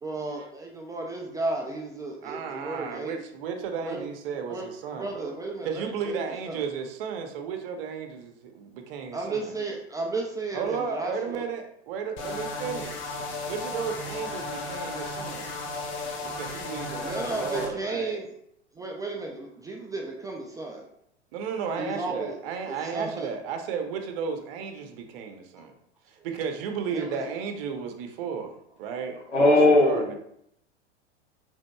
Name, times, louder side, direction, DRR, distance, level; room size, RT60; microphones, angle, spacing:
voice 1, 0.0-3.2 3.8-4.0 4.5-4.7 4.9-6.6 9.1-11.4 17.0-18.2 18.7-20.9 21.8-22.3 22.7-23.3 26.9-27.2, right 2 dB, 10° right, 0 dB, 0.4 m, -34 dB
voice 2, 2.2-5.4 5.6-9.5 10.5-12.9 13.4-15.5 16.2-18.2 21.3-25.7 26.1-29.6 29.8-30.1, right 6 dB, 55° right, 5 dB, 0.8 m, -34 dB
sound 1, 12.2-17.7, left 3 dB, 35° left, 0.9 m, -34 dB
voice 3, 29.3-30.1, left 2 dB, 85° left, -1 dB, 1.4 m, -18 dB
5.0 x 3.5 x 2.3 m, 0.73 s
hypercardioid pair, 95°, 35 cm